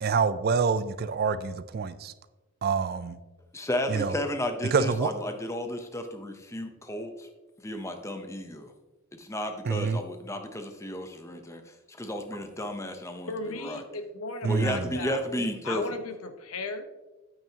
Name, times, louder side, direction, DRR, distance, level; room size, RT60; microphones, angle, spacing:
voice 1, 0.0-2.1 2.6-3.2 3.9-4.1 4.7-5.1 9.7-10.0 14.4-14.9, right 5 dB, 45° right, 14 dB, 0.4 m, -26 dB
voice 2, 3.5-7.3 7.6-8.7 9.1-13.8 14.5-16.0, left 1 dB, 15° left, 6 dB, 0.7 m, -33 dB
voice 3, 13.3-15.2 15.6-16.8, left 3 dB, 75° left, 8 dB, 0.9 m, -36 dB
9.0 x 8.8 x 2.8 m, 1.1 s
head